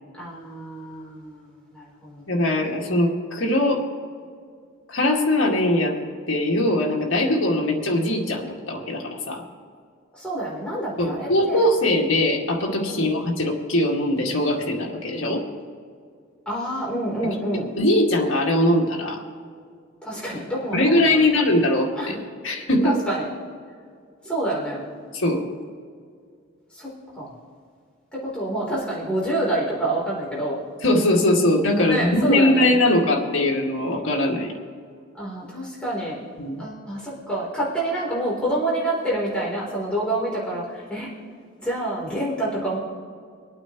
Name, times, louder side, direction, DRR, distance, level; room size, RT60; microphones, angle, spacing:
voice 1, 0.1-2.7 10.2-11.6 12.9-13.1 16.5-17.7 20.0-21.3 22.0-22.2 22.8-23.3 24.2-24.9 26.7-27.3 28.1-30.6 31.8-32.7 35.2-36.2 36.6-41.1 41.6-42.8, right 1 dB, 5° left, -7 dB, 3.6 m, -27 dB
voice 2, 2.3-3.8 4.9-6.0 6.3-9.4 11.0-15.4 17.8-19.2 20.7-22.1 22.4-23.0 25.1-25.4 30.8-34.5 36.4-36.6, left 1 dB, 65° left, -1 dB, 2.2 m, -21 dB
25.5 x 8.9 x 3.1 m, 2.2 s
head